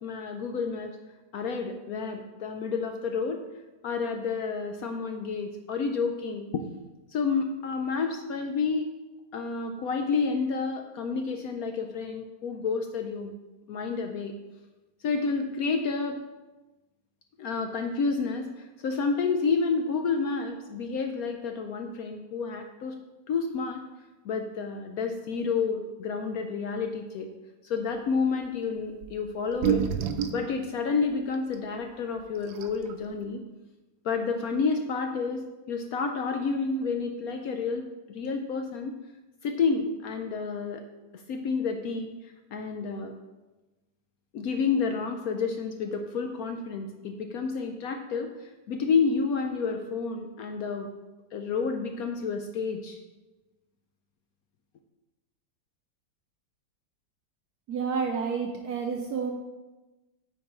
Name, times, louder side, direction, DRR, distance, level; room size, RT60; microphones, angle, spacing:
voice 1, 0.0-1.0 1.3-3.4 3.8-6.6 7.1-8.9 9.3-13.3 13.7-14.3 15.0-16.2 17.4-23.0 23.3-23.9 24.2-27.3 27.6-29.9 30.3-33.4 34.0-39.0 39.4-40.8 41.1-43.1 44.3-50.9 51.3-53.0, left 5 dB, 75° left, 5 dB, 0.8 m, -30 dB
sound 1, 29.0-29.1 29.5-30.5 31.5-31.6 32.2-32.3 32.5-32.9, right 9 dB, 90° right, 1.4 m, -27 dB
voice 2, 57.7-59.3, right 5 dB, 70° right, 2 dB, 1.0 m, -29 dB
9.1 x 4.5 x 4.2 m, 1.1 s
omnidirectional pair, 2.1 m